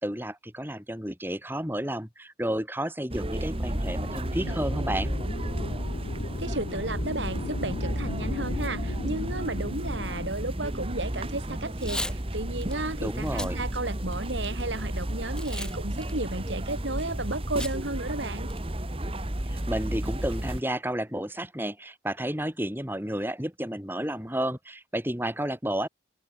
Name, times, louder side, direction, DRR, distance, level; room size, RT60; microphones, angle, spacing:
voice 1, 0.0-5.1 13.0-13.6 19.5-25.9, right 1 dB, 10° right, 5.8 m, -31 dB
sound 1, 3.1-20.6, right 1 dB, 30° right, 1.8 m, -33 dB
sound 2, 3.7-10.3, left 2 dB, 75° left, 1.2 m, -35 dB
voice 2, 6.4-18.5, right 2 dB, 80° right, 4.5 m, -33 dB
Packing tape duct tape / Tearing, 11.7-12.2 12.6-12.7 13.3-13.5 14.0-14.6 15.4-15.7 16.0-16.1 17.6-17.7 18.1-18.2 18.5-18.8, left 1 dB, 5° left, 5.3 m, -35 dB
open air
head